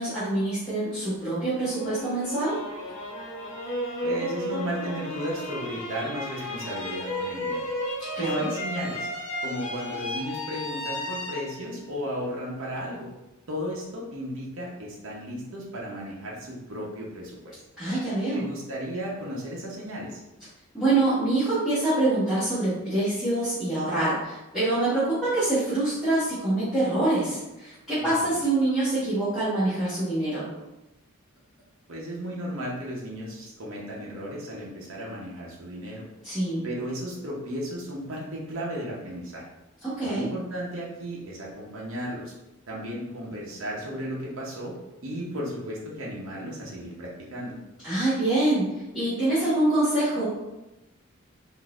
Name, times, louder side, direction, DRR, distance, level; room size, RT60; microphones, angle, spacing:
voice 1, 0.0-2.6 8.1-8.5 17.8-18.5 20.7-30.5 36.2-36.6 39.8-40.2 47.8-50.3, right 2 dB, ahead, -15 dB, 1.2 m, -25 dB
sound 1, 1.6-12.6, left 1 dB, 85° left, 0.9 m, -34 dB
voice 2, 4.0-7.7 8.2-9.1 9.4-13.1 13.5-17.5 18.3-20.2 28.0-28.4 31.9-36.0 36.6-39.5 40.0-42.3 42.7-44.7 45.0-47.6, equal, 65° right, -4 dB, 0.8 m, -34 dB
3.9 x 2.6 x 2.4 m, 0.96 s
head